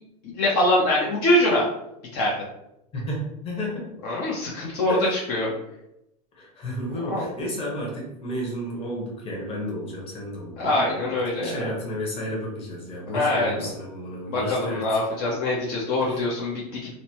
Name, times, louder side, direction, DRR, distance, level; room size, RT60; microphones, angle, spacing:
voice 1, 0.2-1.6 2.1-2.3 4.0-5.5 7.0-7.3 10.6-11.6 13.1-13.7 14.3-16.8, left 1 dB, 55° left, -4 dB, 0.8 m, -23 dB
voice 2, 2.9-4.0 4.9-5.5 6.3-14.8 16.0-16.2, equal, 30° left, -3 dB, 1.1 m, -32 dB
2.9 x 2.1 x 2.8 m, 0.83 s
supercardioid pair, 120°, 20 cm